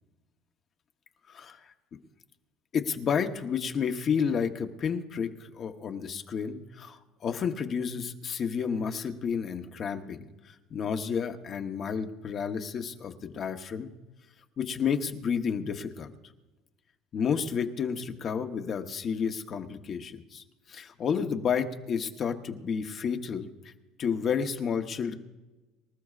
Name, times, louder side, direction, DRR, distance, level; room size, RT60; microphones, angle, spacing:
voice 1, 1.3-1.6 2.7-13.9 14.6-16.1 17.1-23.5 24.0-25.1, left 6 dB, 35° left, 6 dB, 0.9 m, -31 dB
24.5 x 14.0 x 2.4 m, 1.1 s
cardioid pair, 150°, 0 cm